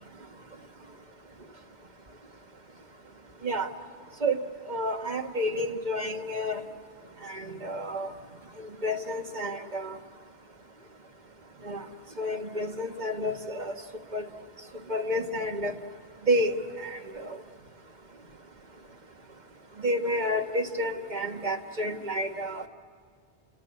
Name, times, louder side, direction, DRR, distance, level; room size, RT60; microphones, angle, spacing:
voice 1, 4.7-6.6 7.2-8.1 8.6-9.9 11.6-11.8 12.2-13.7 14.1-14.3 14.9-15.7 16.3-16.6 16.8-17.4 19.8-22.7, equal, 45° right, 4 dB, 1.5 m, -30 dB
29.5 x 19.0 x 8.5 m, 2.1 s
omnidirectional pair, 1.1 m